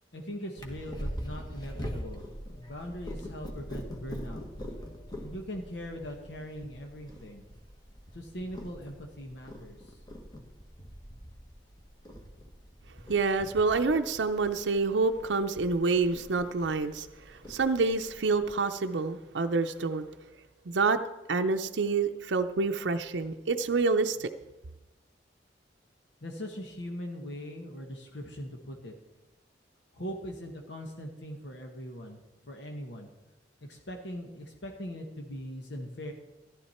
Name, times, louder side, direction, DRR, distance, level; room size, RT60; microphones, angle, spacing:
voice 1, 0.1-4.4 5.2-7.4 8.1-10.0 26.2-28.9 29.9-33.1 33.7-36.1, equal, 75° left, 2 dB, 1.3 m, -41 dB
Purr, 0.6-18.5, equal, 25° left, 1.5 m, -43 dB
voice 2, 13.1-20.1 20.7-21.0 21.3-24.3, right 4 dB, 85° right, 7 dB, 0.6 m, -27 dB
14.5 x 11.5 x 4.3 m, 1.0 s
head